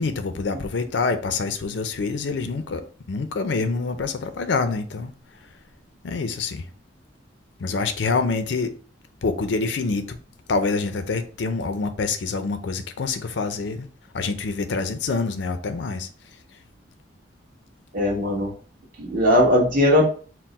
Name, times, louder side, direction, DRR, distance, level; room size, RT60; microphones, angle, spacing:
voice 1, 0.0-5.1 6.0-6.7 7.6-8.7 9.2-10.2 10.5-13.9 14.1-16.1, left 4 dB, 75° left, 0.5 m, -26 dB
voice 2, 17.9-18.5 19.0-20.1, left 1 dB, 50° right, 1.3 m, -19 dB
4.4 x 2.1 x 4.1 m
head